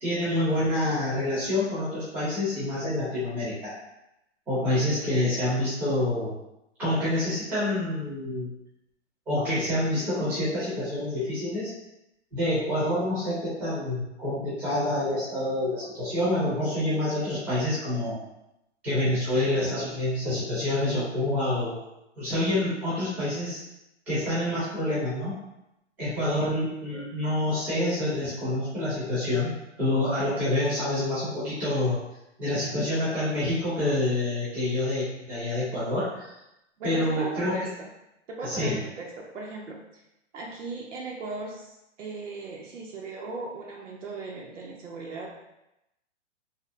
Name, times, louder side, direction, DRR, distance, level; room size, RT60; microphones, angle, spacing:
voice 1, 0.0-3.7 4.5-6.3 6.8-8.5 9.3-11.7 12.3-18.2 18.8-21.7 22.2-23.6 24.1-25.3 26.0-32.0 32.4-36.3 36.8-37.7 38.4-38.8, left 1 dB, 5° right, -11 dB, 0.4 m, -27 dB
voice 2, 36.8-37.9 38.3-40.0 40.3-45.3, right 3 dB, 85° right, -2 dB, 0.6 m, -38 dB
2.6 x 2.0 x 2.4 m, 0.88 s
hypercardioid pair, 140°, 36 cm